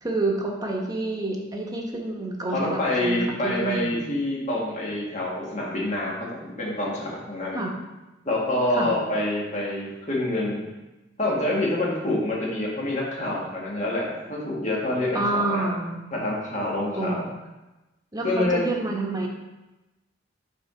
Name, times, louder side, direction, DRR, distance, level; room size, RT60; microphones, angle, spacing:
voice 1, 0.0-4.1 7.5-7.7 8.7-8.9 15.1-16.1 16.9-17.3 18.1-19.3, right 2 dB, 20° right, -1 dB, 1.1 m, -28 dB
voice 2, 2.5-6.3 6.6-7.6 8.3-10.6 11.2-15.7 16.1-17.3 18.2-18.6, left 1 dB, 40° left, -4 dB, 1.8 m, -26 dB
8.9 x 3.9 x 4.3 m, 1.0 s
head